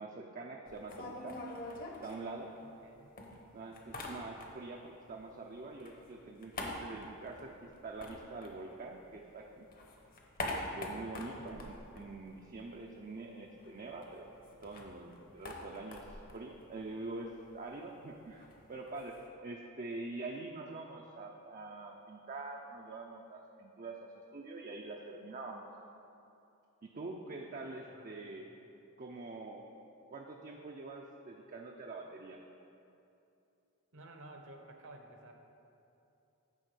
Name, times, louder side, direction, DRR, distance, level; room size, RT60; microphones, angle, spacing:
voice 1, 0.0-1.4 2.0-2.5 3.5-9.7 10.5-25.7 26.8-28.5 29.0-29.7 30.1-32.4, right 3 dB, 40° right, 1 dB, 0.5 m, -45 dB
sound 1, 0.7-2.8 3.2-4.8 5.1-9.2 9.5-12.8 13.1-13.2 13.5-19.3, left 1 dB, 40° left, 0.9 m, -45 dB
voice 2, 2.6-3.2 11.3-11.7 27.9-28.6 33.9-35.3, right 1 dB, 60° right, 3 dB, 0.9 m, -54 dB
10.5 x 3.7 x 6.7 m, 2.8 s
head